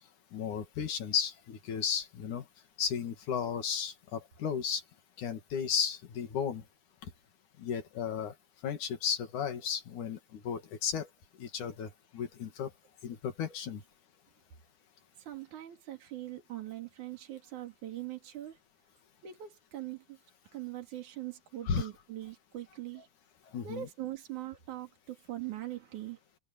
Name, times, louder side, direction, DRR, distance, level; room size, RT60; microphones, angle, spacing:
voice 1, 0.3-2.5 2.8-4.8 5.2-6.6 7.6-8.3 8.6-11.1 11.4-12.7 13.0-13.8 21.7-21.9 23.5-23.9, left 7 dB, 70° left, 3.7 m, -34 dB
voice 2, 15.2-18.6 19.2-20.2 20.5-23.1 23.6-26.2, right 14 dB, 70° right, 4.0 m, -42 dB
omnidirectional pair, 3.6 m